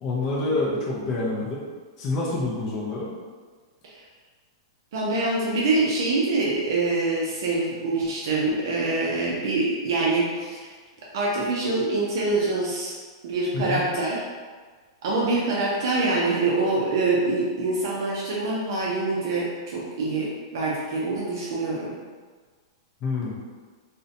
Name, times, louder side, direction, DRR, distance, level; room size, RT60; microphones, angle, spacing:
voice 1, 0.0-1.6 2.0-3.1 13.5-13.8 23.0-23.4, left 2 dB, 20° left, -4 dB, 0.3 m, -27 dB
voice 2, 4.9-10.7 11.1-13.0 13.2-14.2 15.0-22.0, right 2 dB, 45° right, -4 dB, 0.4 m, -25 dB
2.6 x 2.1 x 2.6 m, 1.5 s
supercardioid pair, 180°, 3 cm